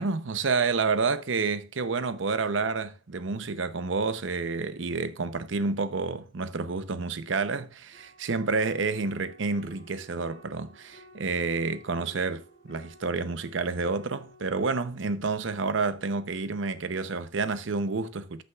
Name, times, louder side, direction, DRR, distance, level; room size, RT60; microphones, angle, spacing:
voice 1, 0.0-18.4, right 4 dB, 75° right, 0.7 m, -29 dB
sound 1, 7.9-14.7, equal, 50° left, 2.1 m, -54 dB
14.0 x 5.8 x 2.4 m
head